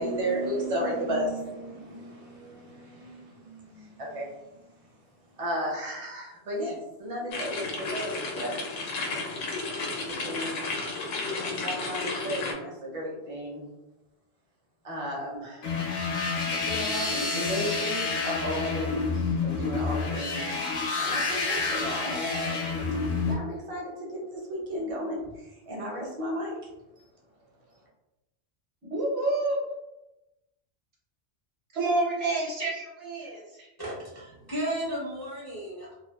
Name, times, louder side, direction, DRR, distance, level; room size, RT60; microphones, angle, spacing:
voice 1, 0.0-4.6 5.4-8.5 10.1-10.6 11.6-13.7 14.8-15.7 16.5-22.7 23.3-25.2 25.7-26.5, equal, 40° right, -3 dB, 0.6 m, -34 dB
sound 1, 7.3-12.5, left 3 dB, 90° left, 0.9 m, -33 dB
sound 2, 15.6-23.3, left 4 dB, 65° left, 0.8 m, -29 dB
voice 2, 28.9-29.6 31.7-33.7, right 2 dB, 65° right, -5 dB, 1.0 m, -28 dB
voice 3, 33.8-35.9, right 1 dB, 30° left, -7 dB, 0.4 m, -34 dB
2.5 x 2.2 x 2.2 m, 0.96 s
omnidirectional pair, 1.2 m